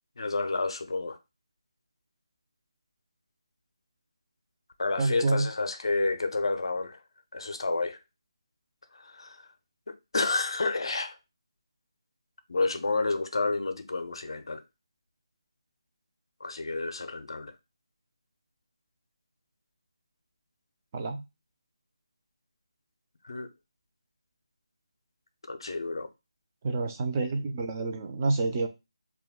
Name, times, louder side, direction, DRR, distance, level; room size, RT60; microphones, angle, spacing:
voice 1, 0.2-1.2 4.8-7.0 7.3-8.0 8.9-9.4 9.9-11.2 12.5-14.6 16.4-17.5 23.2-23.5 25.5-26.1, left 3 dB, 60° left, 0.5 m, -30 dB
voice 2, 5.0-5.5 20.9-21.2 26.6-28.7, right 3 dB, 25° right, 0.4 m, -28 dB
2.2 x 2.2 x 3.4 m
figure-of-eight pair, 160°, 3 cm